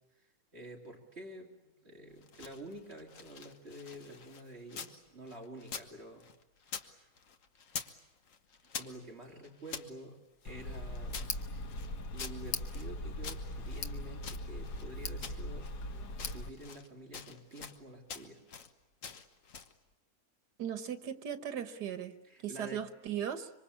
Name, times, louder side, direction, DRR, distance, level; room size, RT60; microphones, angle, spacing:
voice 1, 0.5-1.5 1.8-6.3 6.6-7.1 8.7-10.2 10.4-11.5 12.1-15.7 16.2-18.4 22.2-22.8, right 1 dB, 40° right, 0 dB, 3.5 m, -49 dB
sound 1, 2.1-5.0 5.3-6.9 7.2-8.0 8.3-9.9 10.4-12.9 13.2-14.9 15.2-15.8 16.1-16.9 17.1-17.8 18.1-18.7 19.0-19.8, left 6 dB, 55° left, 1.5 m, -46 dB
Tick, 10.5-16.5, left 2 dB, 85° left, 1.9 m, -40 dB
voice 2, 20.6-22.1 22.4-23.5, right 9 dB, 90° right, 10 dB, 1.9 m, -37 dB
25.5 x 25.0 x 8.5 m, 0.97 s
omnidirectional pair, 1.7 m